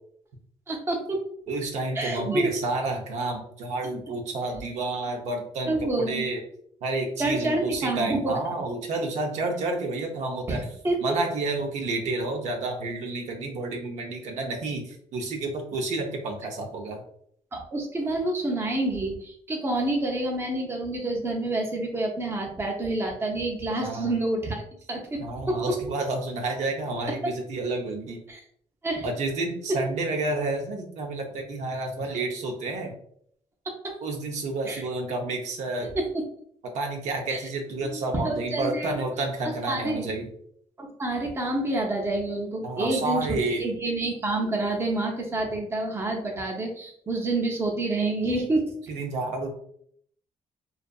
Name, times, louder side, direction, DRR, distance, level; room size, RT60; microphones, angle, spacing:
voice 1, 0.7-1.2 1.9-2.5 5.7-6.3 7.2-8.3 10.5-11.0 17.5-24.6 24.9-25.7 28.3-28.4 28.8-29.1 33.8-33.9 34.7-34.8 35.8-36.2 37.3-37.4 37.8-39.0 39.7-40.1 40.8-48.7, right 2 dB, 20° right, 1 dB, 0.5 m, -28 dB
voice 2, 1.5-6.4 6.8-10.7 11.0-17.0 23.8-24.1 25.2-28.2 29.0-33.0 34.0-35.9 36.6-40.3 42.6-43.6 48.9-49.5, right 2 dB, 75° right, 2 dB, 0.6 m, -30 dB
2.6 x 2.3 x 2.2 m, 0.65 s
cardioid pair, 110°, 12 cm